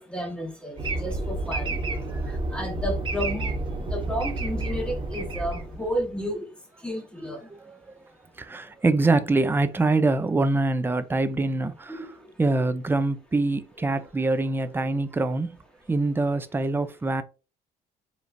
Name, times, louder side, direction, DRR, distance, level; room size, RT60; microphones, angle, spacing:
voice 1, 0.0-1.8 2.5-3.5 3.9-6.4 6.8-7.4 11.9-12.1, equal, 5° left, 1.5 m, -32 dB
sound 1, 0.8-6.2, right 2 dB, 30° right, 1.0 m, -30 dB
voice 2, 8.4-12.1 12.4-15.6 15.9-17.2, right 2 dB, 15° right, 0.5 m, -24 dB
4.9 x 3.2 x 2.6 m
cardioid pair, 110°, 17 cm